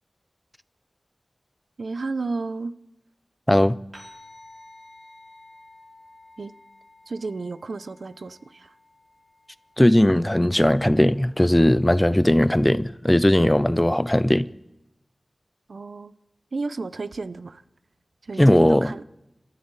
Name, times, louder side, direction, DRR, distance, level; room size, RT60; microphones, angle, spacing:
voice 1, 1.8-2.7 6.4-6.5 7.1-8.7 15.7-16.1 16.5-17.6 18.2-19.0, right 3 dB, 85° right, 0.7 m, -32 dB
sound 1, 3.9-12.6, left 1 dB, 45° right, 5.4 m, -52 dB
voice 2, 9.8-14.5 18.4-18.9, left 1 dB, 15° left, 0.6 m, -18 dB
26.5 x 13.0 x 4.1 m
wide cardioid pair, 55°, 0 cm